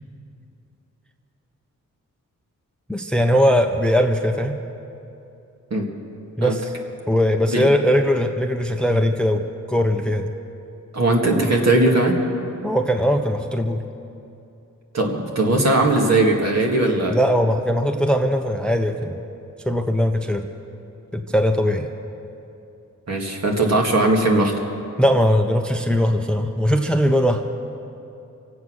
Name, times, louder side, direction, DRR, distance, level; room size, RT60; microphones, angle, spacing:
voice 1, 2.9-4.6 6.4-6.7 7.1-10.3 12.6-13.8 17.1-19.2 19.6-20.5 21.1-21.9 25.0-27.4, equal, 5° left, 6 dB, 0.5 m, -20 dB
voice 2, 10.9-12.2 14.9-17.2 23.1-24.5, right 2 dB, 55° right, 0 dB, 2.1 m, -19 dB
25.0 x 8.4 x 6.3 m, 2.8 s
wide cardioid pair, 165°, 31 cm